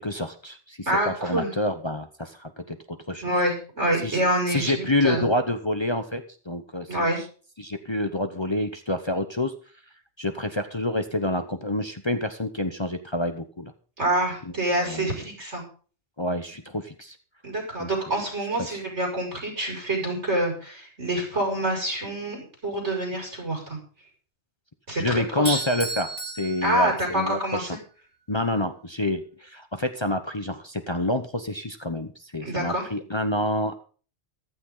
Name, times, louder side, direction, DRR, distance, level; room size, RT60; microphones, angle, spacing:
voice 1, 0.0-3.2 4.0-4.2 4.5-7.1 7.6-9.5 10.2-13.7 14.4-14.5 14.8-15.2 16.2-17.2 17.8-17.9 25.0-27.7 28.3-33.8, left 1 dB, 25° left, 7 dB, 0.9 m, -28 dB
voice 2, 0.9-1.5 3.2-5.3 6.9-7.2 14.0-15.6 17.4-23.8 24.9-25.6 26.6-27.8 32.4-32.8, right 1 dB, 80° right, -1 dB, 6.7 m, -26 dB
Bell / Doorbell, 25.5-27.5, right 3 dB, 10° right, 1.5 m, -35 dB
14.5 x 13.0 x 3.9 m, 0.40 s
omnidirectional pair, 1.2 m